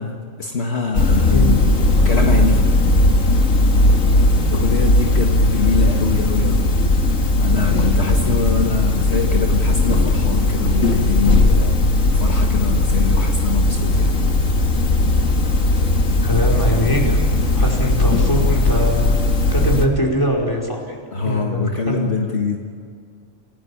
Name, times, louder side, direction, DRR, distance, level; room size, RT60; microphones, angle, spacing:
voice 1, 0.0-1.5 2.1-2.7 4.5-6.7 7.4-14.2 21.1-22.6, left 4 dB, 55° left, 1 dB, 1.9 m, -24 dB
sound 1, 0.9-19.9, left 2 dB, 85° left, 2.3 m, -17 dB
voice 2, 16.2-17.2 17.5-19.2 19.5-21.0 21.2-22.1, equal, 15° left, 1 dB, 5.0 m, -22 dB
28.5 x 17.5 x 8.8 m, 2.1 s
omnidirectional pair, 1.3 m